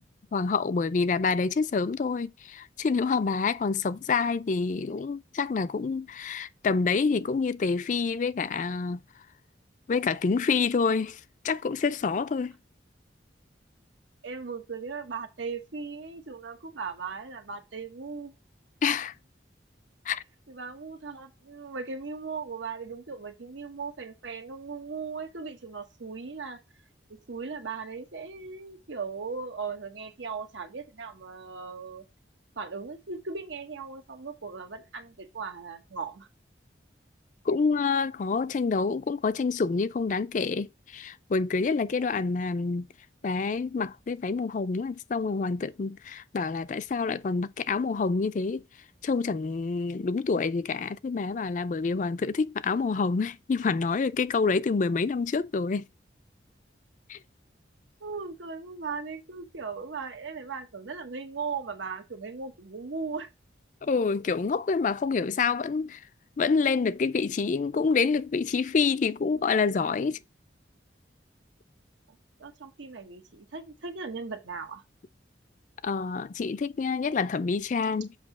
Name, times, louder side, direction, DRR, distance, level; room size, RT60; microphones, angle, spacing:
voice 1, 0.3-9.0 9.9-12.5 18.8-19.1 20.1-20.2 37.5-42.9 43.2-48.6 49.0-55.9 57.1-57.2 63.8-66.0 66.4-70.2 75.8-78.1, left 4 dB, 45° left, 0.4 m, -27 dB
voice 2, 14.2-18.3 20.5-26.6 27.1-32.0 32.6-36.3 58.0-63.3 72.1-74.8, right 5 dB, 90° right, 1.0 m, -38 dB
7.4 x 2.8 x 5.8 m
head